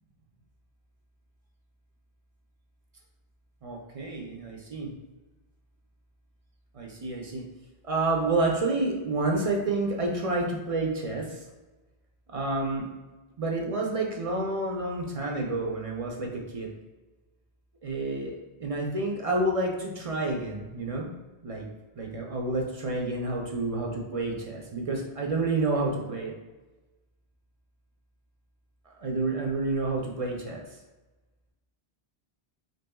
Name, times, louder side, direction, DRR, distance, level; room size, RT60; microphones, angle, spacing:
voice 1, 3.6-4.9 6.7-7.4 7.8-11.4 12.3-12.9 13.4-16.7 17.8-21.1 21.4-21.6 22.0-26.3 29.0-30.8, right 2 dB, 45° right, -1 dB, 0.5 m, -29 dB
4.0 x 3.3 x 2.3 m, 1.2 s
omnidirectional pair, 1.1 m